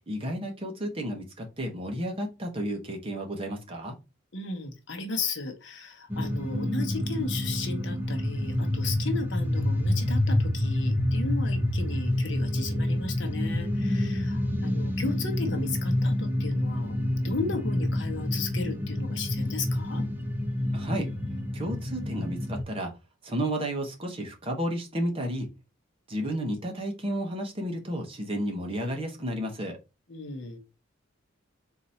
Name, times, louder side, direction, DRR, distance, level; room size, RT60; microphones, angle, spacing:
voice 1, 0.1-4.0 20.7-21.1 21.5-23.0 23.2-25.5 26.1-29.8, equal, 25° right, 0.9 m, -32 dB
voice 2, 4.3-17.0 17.2-20.1 30.1-30.6, left 4 dB, 60° left, 0.9 m, -35 dB
sound 1, 6.1-22.6, left 1 dB, 10° right, 0.6 m, -28 dB
3.9 x 2.7 x 4.2 m
head